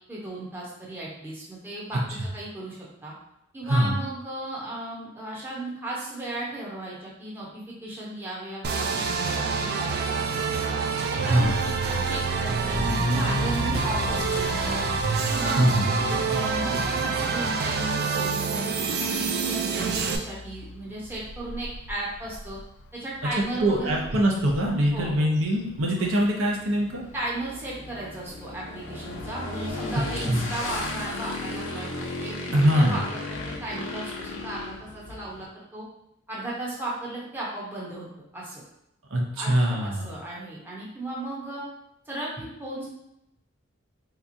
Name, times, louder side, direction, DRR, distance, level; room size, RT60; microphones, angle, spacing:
voice 1, 0.1-2.0 2.3-3.1 3.5-10.7 11.1-14.9 15.3-22.6 22.9-24.0 24.9-25.3 26.0-26.1 27.1-32.4 32.7-35.9 36.3-38.1 38.3-38.6 39.4-41.6 42.1-42.9, right 1 dB, 10° right, -6 dB, 0.7 m, -35 dB
sound 1, 8.6-20.2, right 5 dB, 50° right, 0.4 m, -27 dB
Motor vehicle (road) / Accelerating revving vroom, 11.4-26.2 26.5-26.9 27.4-27.5 27.8-27.9 28.2-28.3 29.6-29.7, left 3 dB, 55° left, 0.3 m, -36 dB
voice 2, 23.6-27.0 30.3-30.4 32.5-33.0 39.1-40.1, right 1 dB, 85° right, -1 dB, 0.7 m, -22 dB
Motorcycle / Engine, 25.8-35.4, left 2 dB, 85° left, 0.7 m, -35 dB
3.5 x 2.9 x 2.5 m, 0.83 s
head